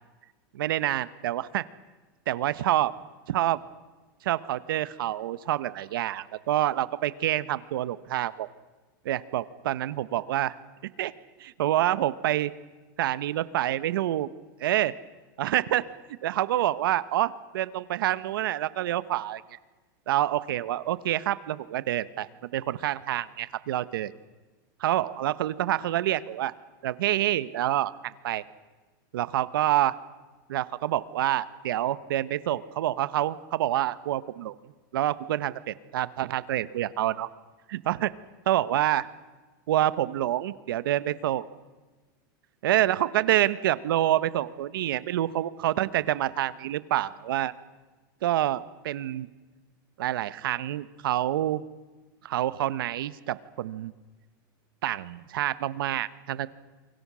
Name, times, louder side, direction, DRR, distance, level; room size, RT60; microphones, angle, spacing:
voice 1, 0.5-1.7 2.3-2.9 3.3-3.6 4.2-8.5 9.0-10.6 11.0-11.1 11.4-12.5 13.0-14.3 14.6-14.9 15.4-15.8 16.2-19.6 20.1-24.1 24.8-26.5 26.8-28.4 29.1-30.0 30.5-34.5 34.9-37.3 37.7-38.1 38.5-39.1 39.7-41.5 42.6-47.5 48.2-49.3 50.0-51.6 52.2-53.9 54.8-56.5, right 13 dB, 85° right, 15 dB, 1.2 m, -27 dB
29.0 x 23.5 x 6.3 m, 1.3 s
supercardioid pair, 170°, 12 cm